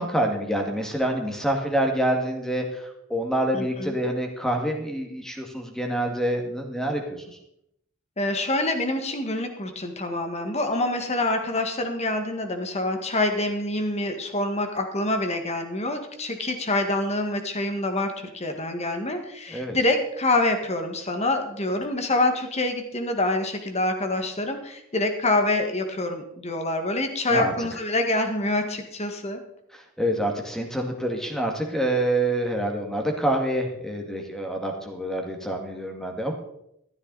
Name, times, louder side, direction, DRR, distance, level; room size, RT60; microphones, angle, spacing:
voice 1, 0.0-7.4 19.5-19.8 27.3-27.5 29.7-36.3, right 1 dB, ahead, 2 dB, 2.0 m, -27 dB
voice 2, 3.5-3.9 8.2-29.4, left 2 dB, 30° left, 6 dB, 1.7 m, -26 dB
13.5 x 12.5 x 4.1 m, 0.76 s
head